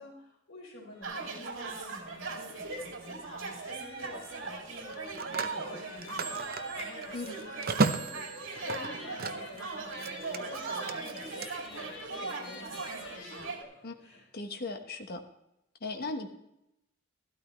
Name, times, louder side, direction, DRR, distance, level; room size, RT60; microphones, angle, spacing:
voice 1, 0.0-13.6 14.0-14.3 15.9-16.3, left 2 dB, 90° left, -1 dB, 3.8 m, -49 dB
sound 1, 0.9-14.2, left 3 dB, 70° left, 3.6 m, -50 dB
sound 2, 1.0-13.6, right 4 dB, 80° right, 2.4 m, -39 dB
Telephone, 2.6-2.8 4.8-9.6 9.9-11.5, right 4 dB, 50° right, 0.7 m, -35 dB
voice 2, 14.3-15.2 15.8-16.3, left 3 dB, 55° left, 5 dB, 1.2 m, -37 dB
13.5 x 12.5 x 3.2 m, 0.85 s
head